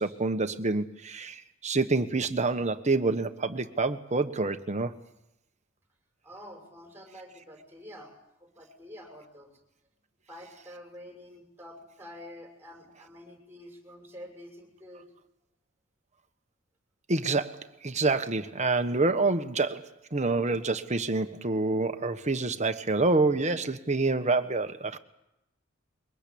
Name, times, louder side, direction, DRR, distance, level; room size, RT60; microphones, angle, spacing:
voice 1, 0.0-4.9 17.1-25.0, right 3 dB, 35° right, 1.3 m, -27 dB
voice 2, 6.2-9.5 10.3-15.1, equal, 10° right, 6.4 m, -48 dB
23.0 x 20.0 x 8.7 m
head